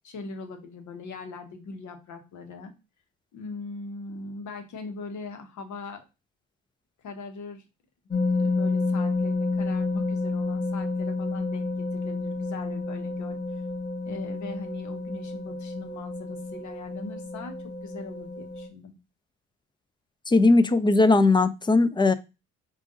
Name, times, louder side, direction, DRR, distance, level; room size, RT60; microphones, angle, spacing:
voice 1, 0.0-2.7 3.3-6.0 7.0-7.6 8.3-13.4 14.0-17.5 17.8-18.9, left 3 dB, 75° left, 6 dB, 1.1 m, -40 dB
sound 1, 8.1-18.7, left 3 dB, 35° left, 1.6 m, -30 dB
voice 2, 20.3-22.1, left 3 dB, 15° left, 12 dB, 0.4 m, -19 dB
5.0 x 2.5 x 3.8 m, 0.27 s
cardioid pair, 90°, 30 cm